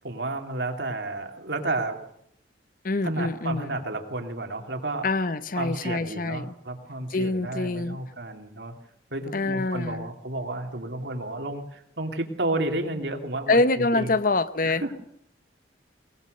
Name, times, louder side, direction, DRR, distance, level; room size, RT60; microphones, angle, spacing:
voice 1, 0.0-2.0 3.0-5.1 5.5-8.7 9.1-14.1 14.6-14.9, right 2 dB, 70° right, 4 dB, 2.7 m, -31 dB
voice 2, 2.8-3.8 5.0-6.5 7.1-8.0 9.3-10.1 13.5-14.8, left 3 dB, 50° left, 14 dB, 0.8 m, -25 dB
22.5 x 19.5 x 6.6 m, 0.72 s
head